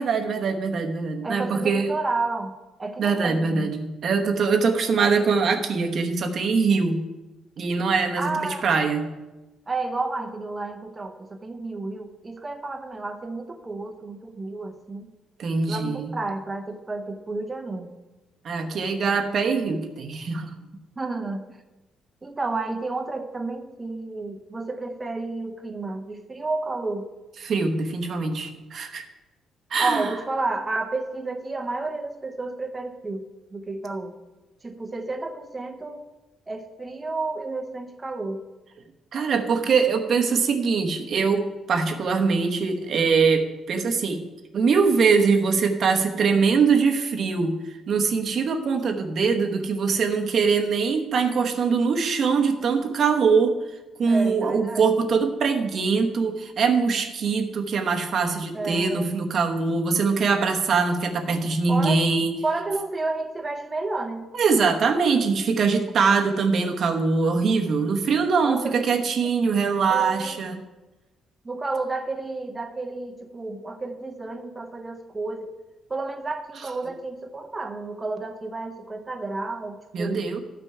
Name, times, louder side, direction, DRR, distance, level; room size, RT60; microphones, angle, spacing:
voice 1, 0.0-1.9 3.0-7.0 7.6-9.1 15.4-16.1 18.4-20.5 27.4-29.0 29.7-30.1 39.1-44.2 44.5-53.5 54.0-62.3 64.3-70.6 79.9-80.4, right 5 dB, 40° right, 3 dB, 1.0 m, -23 dB
voice 2, 1.2-3.7 8.2-8.7 9.7-15.1 15.7-17.9 21.0-21.5 22.2-27.1 29.8-34.2 34.6-36.0 36.5-38.4 54.1-55.0 58.5-59.1 61.7-62.0 62.4-64.3 68.4-68.9 69.9-70.4 71.4-75.5 75.9-80.2, right 3 dB, 15° right, 5 dB, 0.7 m, -31 dB
13.0 x 5.9 x 4.7 m, 1.1 s
cardioid pair, 180°, 0 cm